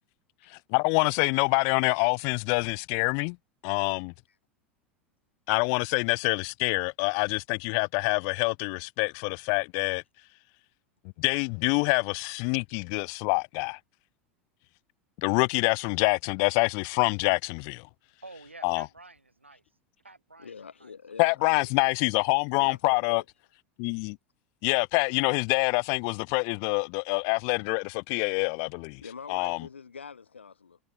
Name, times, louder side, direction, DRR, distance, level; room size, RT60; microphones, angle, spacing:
voice 1, 0.7-3.4 3.6-4.1 5.5-10.0 11.2-13.8 15.2-17.8 18.6-18.8 21.2-23.2 23.8-24.2 24.6-29.0 29.3-29.6, left 40 dB or more, 50° left, 0.8 m, -26 dB
voice 2, 18.2-19.6 20.0-20.9, right 3 dB, 90° right, 4.2 m, -49 dB
voice 3, 20.4-21.9 22.5-23.2 29.0-30.8, left 6 dB, 80° left, 3.2 m, -45 dB
figure-of-eight pair, 80°, 6 cm